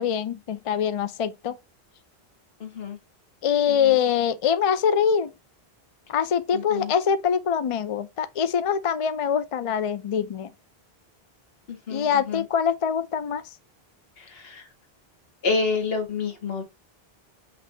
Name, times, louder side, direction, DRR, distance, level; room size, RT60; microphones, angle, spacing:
voice 1, 0.0-1.6 3.4-5.3 6.1-10.5 11.9-13.4, left 7 dB, 50° left, 0.4 m, -24 dB
voice 2, 2.6-3.0 3.7-4.0 6.5-6.9 11.7-12.4 14.2-14.7 15.4-16.6, left 4 dB, 70° left, 1.5 m, -29 dB
5.9 x 3.2 x 2.6 m
omnidirectional pair, 1.0 m